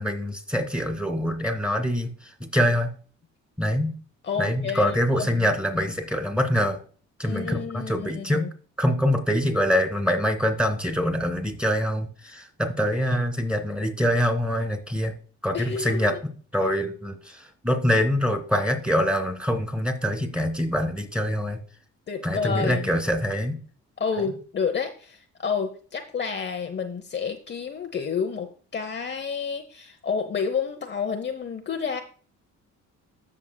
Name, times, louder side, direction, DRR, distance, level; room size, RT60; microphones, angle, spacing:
voice 1, 0.0-2.9 3.6-3.9 4.4-6.8 7.2-8.5 8.8-15.1 15.4-16.2 16.5-21.6 22.2-23.6, equal, 5° right, 6 dB, 2.4 m, -24 dB
voice 2, 4.2-5.4 7.2-8.5 15.5-16.2 22.1-22.9 24.0-32.0, left 6 dB, 35° left, 5 dB, 0.9 m, -30 dB
15.0 x 6.4 x 2.3 m, 0.41 s
cardioid pair, 90°, 30 cm